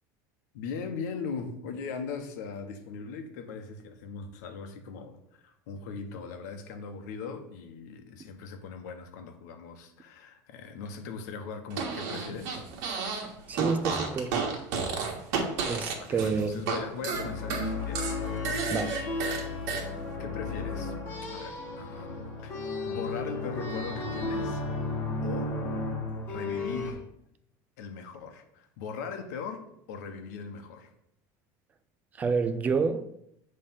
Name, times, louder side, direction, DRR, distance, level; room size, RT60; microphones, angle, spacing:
voice 1, 0.5-12.6 15.6-18.2 20.2-20.9 21.3-22.5 22.9-24.6 25.2-25.6 26.3-27.0 27.8-30.9, left 5 dB, 90° left, 1.1 m, -39 dB
Fart, 11.7-13.3 13.5-16.8 17.0-19.8, right 5 dB, 70° right, 1.5 m, -31 dB
voice 2, 13.5-14.4 15.6-16.6 18.7-19.0 32.2-33.1, right 5 dB, 20° right, 0.3 m, -28 dB
sound 1, 17.1-26.9, left 3 dB, 25° left, 1.3 m, -34 dB
7.6 x 3.2 x 5.6 m
cardioid pair, 175°, 9 cm